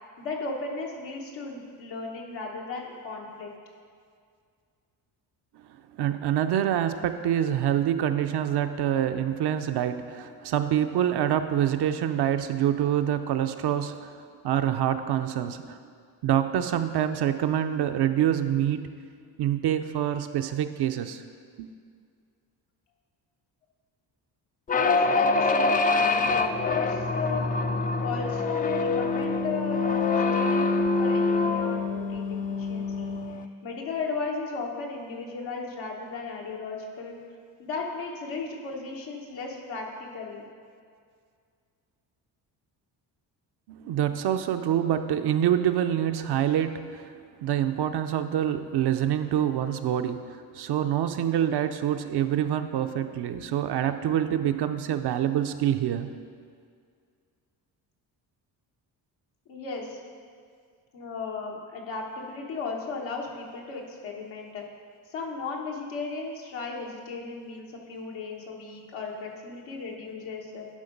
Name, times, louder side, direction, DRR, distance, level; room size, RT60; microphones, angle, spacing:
voice 1, 0.2-3.5 24.8-27.5 28.0-33.2 33.6-37.2 37.6-39.9 40.1-40.4 59.5-60.0 60.9-64.6 65.1-70.7, left 4 dB, 85° left, -1 dB, 1.4 m, -35 dB
voice 2, 5.9-14.1 14.4-15.8 16.2-18.8 19.4-21.2 21.6-21.7 43.7-47.1 47.4-56.1, right 10 dB, 60° right, 8 dB, 0.6 m, -26 dB
sound 1, 24.7-33.4, left 3 dB, 20° left, 0.3 m, -25 dB
11.0 x 3.8 x 5.2 m, 2.1 s
cardioid pair, 70°, 44 cm